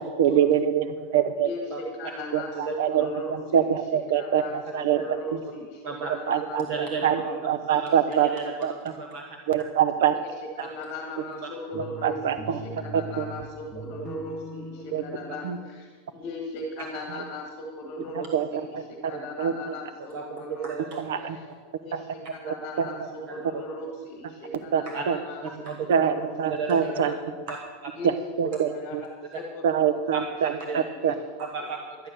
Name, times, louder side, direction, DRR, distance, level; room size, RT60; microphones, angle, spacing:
voice 1, 0.0-0.9 1.1-1.5 2.3-3.1 3.5-5.0 6.3-6.6 7.0-7.2 7.5-8.3 8.6-8.7 9.5-10.1 12.0-12.6 12.9-13.2 14.9-15.0 15.4-15.6 18.3-18.5 19.4-19.5 21.1-21.4 21.9-22.0 22.8-22.9 24.7-25.2 25.9-26.1 26.4-27.1 28.0-28.1 28.4-28.7 29.6-30.5 31.0-31.1, right 9 dB, 75° right, 10 dB, 0.8 m, -23 dB
voice 2, 1.4-6.6 7.0-8.3 10.1-10.3 10.6-20.7 21.2-21.4 21.8-26.3 26.6-27.1 27.9-28.4 28.7-29.1 29.3-30.0 30.7-31.2, left 1 dB, 30° left, 1 dB, 1.7 m, -38 dB
voice 3, 2.5-3.1 4.9-5.0 5.8-6.1 6.6-7.0 7.7-9.4 10.6-10.7 15.1-15.2 16.8-16.9 18.0-18.3 19.0-19.3 20.0-21.0 22.4-22.5 23.3-23.6 24.8-25.0 25.4-26.0 26.5-27.2 27.5-27.6 27.8-27.9 28.4-28.6 30.1-30.8 31.4-31.8, right 5 dB, 40° right, 2 dB, 1.2 m, -34 dB
sound 1, 11.7-13.5 13.7-15.3, right 1 dB, 5° right, 1.1 m, -40 dB
11.5 x 11.0 x 6.7 m, 1.5 s
supercardioid pair, 175°, 0 cm